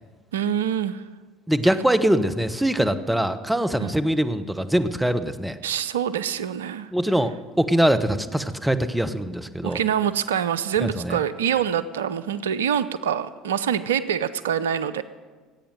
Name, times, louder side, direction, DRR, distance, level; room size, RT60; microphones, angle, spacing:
voice 1, 0.3-1.0 3.8-3.9 5.6-6.9 9.6-15.0, right 9 dB, 80° right, 14 dB, 0.5 m, -25 dB
voice 2, 1.5-5.6 6.9-9.8 10.8-11.2, right 1 dB, 5° right, 10 dB, 1.0 m, -23 dB
16.5 x 8.7 x 7.8 m, 1.4 s
figure-of-eight pair, 65°, 0 cm